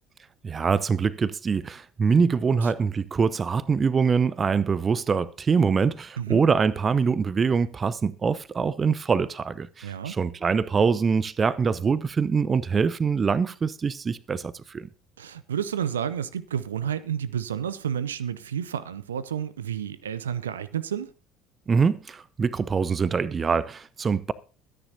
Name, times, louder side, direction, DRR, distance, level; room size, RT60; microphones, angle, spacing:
voice 1, 0.4-14.9 21.7-24.3, right 5 dB, 30° right, 0.6 m, -24 dB
voice 2, 9.8-10.1 15.2-21.1, right 8 dB, 75° right, 0.5 m, -30 dB
23.0 x 10.0 x 2.7 m
figure-of-eight pair, 60°, 0 cm